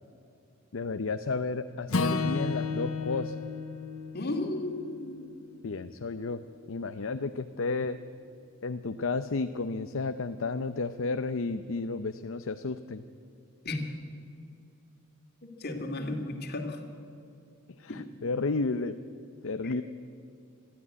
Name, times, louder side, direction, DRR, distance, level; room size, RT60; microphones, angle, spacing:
voice 1, 0.7-3.4 5.6-6.4 6.7-8.0 8.6-13.0 17.8-19.0 19.4-19.8, left 3 dB, 65° left, 9 dB, 0.6 m, -32 dB
Acoustic guitar / Strum, 1.9-6.2, left 4 dB, 85° left, 1.2 m, -33 dB
voice 2, 4.1-5.3 13.6-13.8 15.6-16.8 17.9-18.0 19.6-19.8, left 2 dB, 50° left, 4 dB, 2.4 m, -34 dB
21.0 x 13.5 x 9.6 m, 2.5 s
head